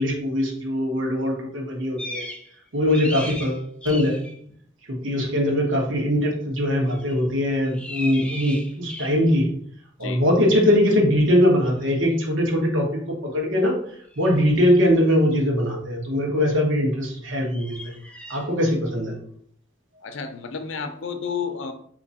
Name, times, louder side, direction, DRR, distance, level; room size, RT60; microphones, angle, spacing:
voice 1, 0.0-2.2 2.7-4.2 4.9-9.5 10.0-13.7 14.2-17.9 18.3-19.1, equal, 80° right, -1 dB, 1.2 m, -21 dB
sound 1, 2.0-2.5 2.8-4.3 6.9-7.2 7.7-9.4 12.1-12.2 14.1-14.5 17.4-18.5, left 1 dB, 5° left, 0.4 m, -37 dB
voice 2, 20.0-21.7, left 6 dB, 75° left, 8 dB, 0.6 m, -31 dB
3.6 x 2.9 x 4.1 m, 0.62 s
head